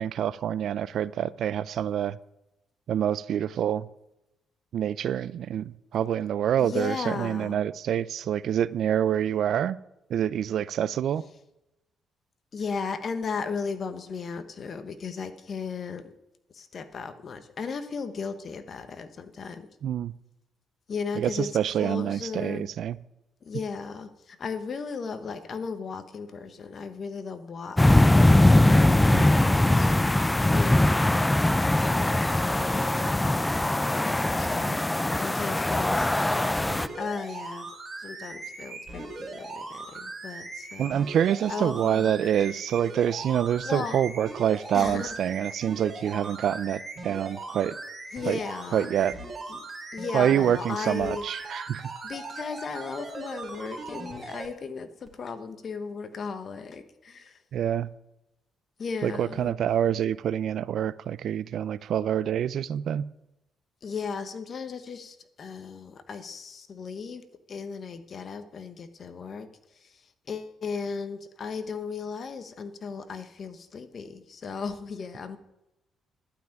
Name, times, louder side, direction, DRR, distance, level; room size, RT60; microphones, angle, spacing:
voice 1, 0.0-2.2 2.9-3.9 4.7-9.8 10.1-11.2 19.8-20.1 21.2-23.0 29.1-29.3 40.8-47.7 48.3-48.4 48.7-49.2 50.1-51.9 57.5-57.9 59.0-63.0, right 9 dB, 70° right, 18 dB, 0.4 m, -26 dB
voice 2, 6.6-7.6 12.5-16.1 16.5-19.7 20.9-21.5 21.8-22.7 23.4-29.9 30.5-31.1 31.8-36.1 36.9-37.7 38.0-40.9 41.5-42.1 42.5-42.6 43.6-44.0 44.7-45.1 48.1-48.9 49.5-49.6 49.9-51.3 52.0-57.4 58.8-59.5 63.8-69.5 69.8-69.9 70.3-75.4, left 5 dB, 50° left, 10 dB, 1.2 m, -36 dB
sound 1, 27.8-36.9, left 1 dB, 10° left, 0.4 m, -21 dB
sound 2, 36.6-54.5 55.1-55.2, right 3 dB, 30° right, 2.8 m, -39 dB
11.5 x 5.9 x 8.9 m, 0.89 s
cardioid pair, 90°, 0 cm